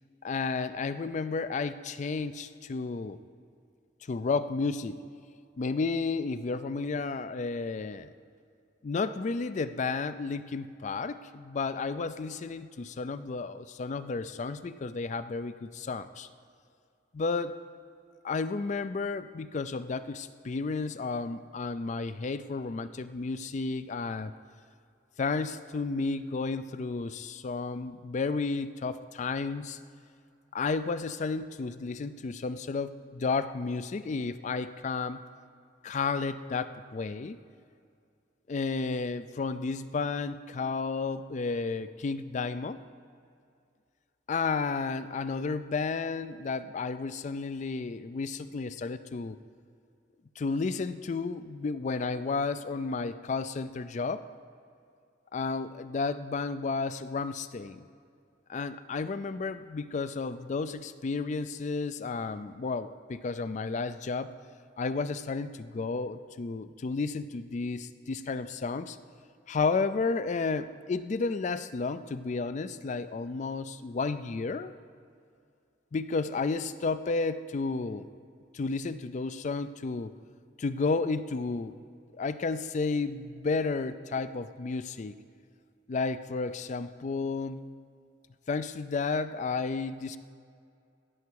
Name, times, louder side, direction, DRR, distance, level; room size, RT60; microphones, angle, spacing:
voice 1, 0.2-3.2 4.1-5.0 5.6-8.1 8.8-16.3 17.1-17.6 18.2-24.3 25.2-29.8 30.5-35.2 35.8-37.4 38.5-42.8 44.3-49.4 50.4-54.3 55.3-57.9 58.5-64.3 64.8-69.0 69.5-74.8 75.9-78.1 78.5-80.1 80.6-81.8 82.1-85.1 85.9-87.6 88.5-90.2, left 4 dB, 40° left, 13 dB, 0.4 m, -32 dB
16.0 x 6.0 x 4.7 m, 2.3 s
head